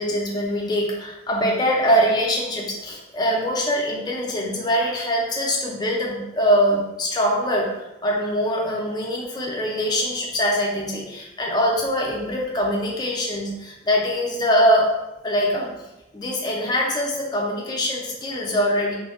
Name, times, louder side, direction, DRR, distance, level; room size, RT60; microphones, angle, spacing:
voice 1, 0.0-14.9 15.2-15.7 16.1-19.0, equal, 20° left, -2 dB, 0.4 m, -23 dB
2.5 x 2.1 x 2.4 m, 0.97 s
head